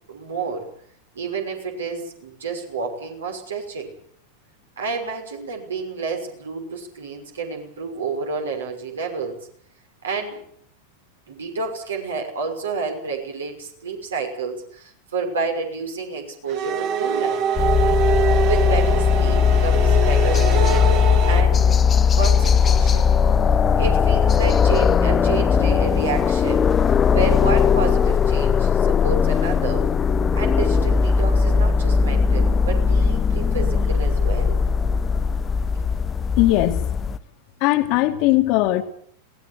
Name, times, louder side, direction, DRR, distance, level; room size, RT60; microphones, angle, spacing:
voice 1, 0.1-0.7 1.1-3.9 4.8-9.5 10.0-10.4 11.3-17.4 18.4-20.8 21.2-21.8 22.1-23.1 23.7-26.7 27.1-29.9 30.3-34.6, right 4 dB, 65° right, 3 dB, 5.9 m, -29 dB
sound 1, 16.5-21.4, right 7 dB, 45° right, 2.7 m, -24 dB
sound 2, 17.6-37.2, left 6 dB, 20° left, 0.9 m, -18 dB
voice 2, 36.4-36.9 37.6-38.8, left 16 dB, 45° left, 7 dB, 2.1 m, -19 dB
22.5 x 18.5 x 8.2 m, 0.63 s
figure-of-eight pair, 90°, 0 cm